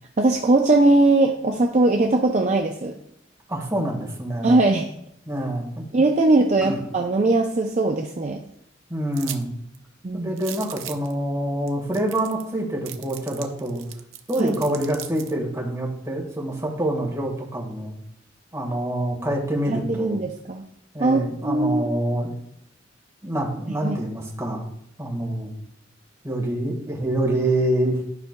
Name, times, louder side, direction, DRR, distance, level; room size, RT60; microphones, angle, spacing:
voice 1, 0.2-3.0 4.4-4.9 5.9-8.4 10.0-10.3 14.4-14.6 19.7-20.6 21.0-21.9 23.8-24.0, right 2 dB, 35° right, 3 dB, 0.5 m, -20 dB
voice 2, 3.5-4.5 5.3-5.9 6.6-6.8 8.9-9.5 10.1-13.8 14.3-17.9 18.5-20.2 20.9-22.3 23.2-24.7 25.0-25.5 26.2-28.0, right 1 dB, 15° right, -1 dB, 1.6 m, -26 dB
sound 1, 9.1-9.4 9.7-9.8 10.4-11.1 11.7-11.8 11.9-12.5 12.9-15.3, right 11 dB, 85° right, 0.6 m, -37 dB
12.0 x 5.7 x 2.2 m, 0.74 s
head